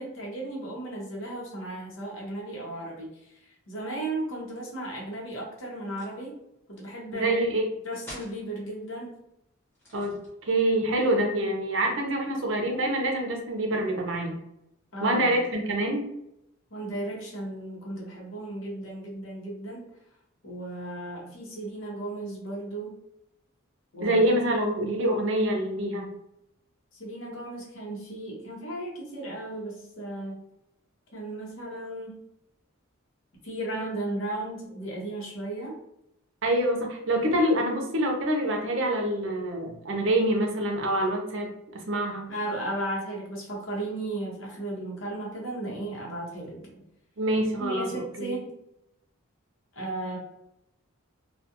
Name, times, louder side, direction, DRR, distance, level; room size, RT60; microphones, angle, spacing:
voice 1, 0.0-3.4 3.7-6.3 6.8-7.3 7.8-9.1 14.9-15.4 16.7-19.8 20.4-23.0 23.9-24.2 26.9-30.4 31.1-32.2 33.4-35.7 42.3-46.7 47.6-48.5 49.7-50.2, right 1 dB, 70° left, -2 dB, 0.9 m, -35 dB
sound 1, 5.8-6.3 7.9-8.4 9.7-10.6, left 1 dB, 10° left, 0.9 m, -46 dB
voice 2, 7.1-7.6 9.9-10.2 10.5-14.4 15.0-16.1 24.0-26.1 36.4-41.5 41.9-42.3 47.2-48.4, right 1 dB, 65° right, 2 dB, 0.6 m, -26 dB
2.3 x 2.3 x 2.8 m, 0.82 s
head